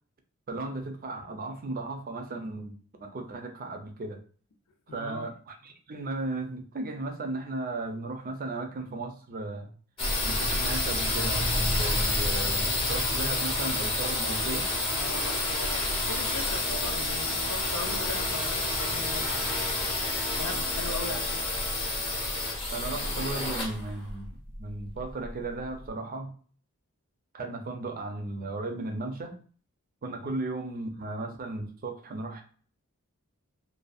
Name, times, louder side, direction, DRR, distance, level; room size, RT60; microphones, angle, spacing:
voice 1, 0.5-4.2 4.9-9.7 10.2-14.7 22.7-26.3 27.3-29.4 30.0-32.4, right 2 dB, 40° right, 5 dB, 0.5 m, -35 dB
voice 2, 4.9-5.3 14.9-19.7 20.3-21.6 30.2-30.4, left 3 dB, 85° left, 5 dB, 0.6 m, -39 dB
sound 1, 10.0-25.6, left 2 dB, 25° left, 0.7 m, -29 dB
2.5 x 2.2 x 2.4 m, 0.44 s
head